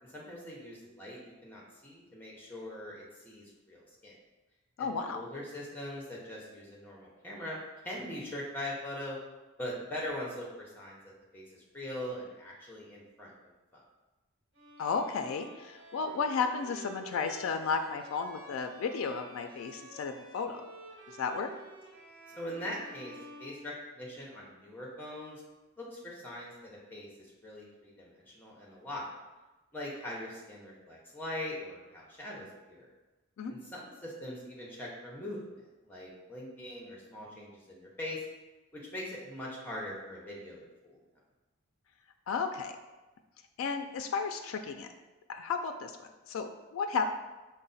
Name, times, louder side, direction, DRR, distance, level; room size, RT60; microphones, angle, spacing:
voice 1, 0.0-4.1 4.8-9.2 9.6-11.0 11.3-13.3 13.7-13.8 22.3-25.4 25.8-29.2 29.7-32.9 33.5-38.2 38.7-41.0, left 1 dB, 10° left, -3 dB, 0.7 m, -42 dB
voice 2, 4.8-5.2 14.8-20.6 21.1-21.5 33.4-33.5 42.3-42.7 43.6-44.9 45.3-47.1, left 5 dB, 75° left, 6 dB, 0.3 m, -33 dB
Bowed string instrument, 14.5-24.3, right 1 dB, 60° right, 1.2 m, -51 dB
4.8 x 2.1 x 4.0 m, 1.1 s
head